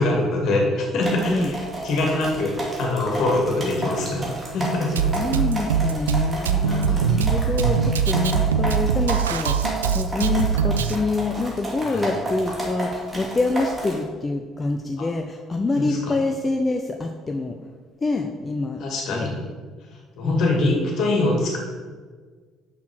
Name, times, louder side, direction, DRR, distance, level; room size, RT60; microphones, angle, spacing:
voice 1, 0.0-1.6 1.8-2.5 2.8-4.2 4.5-4.9 6.6-7.0 11.8-12.0 15.8-16.0 18.8-19.4 20.2-21.6, left 2 dB, 65° left, 0 dB, 2.2 m, -23 dB
sound 1, 1.0-14.0, right 2 dB, 30° right, 2.7 m, -32 dB
voice 2, 5.0-9.6 9.9-17.6 18.0-18.8 19.1-19.3 20.2-20.9, left 3 dB, 30° left, 4 dB, 0.7 m, -26 dB
Drum kit, 5.0-11.0, right 6 dB, 90° right, 0.3 m, -22 dB
6.4 x 5.9 x 6.0 m, 1.5 s
hypercardioid pair, 55°, 0 cm